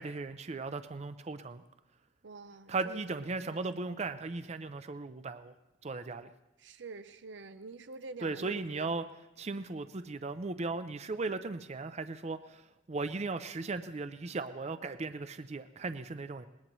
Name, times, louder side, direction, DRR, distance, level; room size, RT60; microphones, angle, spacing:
voice 1, 0.0-1.6 2.7-5.5 5.8-6.3 8.2-9.0 9.4-12.6 12.9-16.4, right 3 dB, 35° right, 11 dB, 0.5 m, -37 dB
voice 2, 2.2-3.9 6.6-8.9, right 3 dB, 80° right, 10 dB, 0.7 m, -47 dB
21.0 x 19.5 x 3.1 m, 0.97 s
head